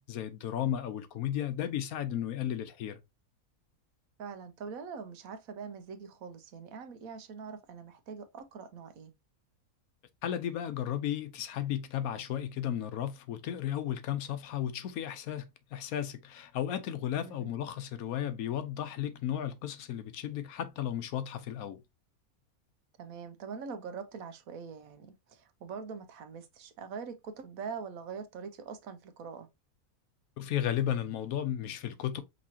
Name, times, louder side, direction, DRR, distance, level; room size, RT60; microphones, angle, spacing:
voice 1, 0.0-3.0 10.2-21.8 30.4-32.2, left 10 dB, 80° left, 1.1 m, -34 dB
voice 2, 4.2-9.1 17.2-17.5 23.0-29.5, right 6 dB, 75° right, 1.2 m, -43 dB
5.4 x 3.0 x 2.7 m
omnidirectional pair, 1.5 m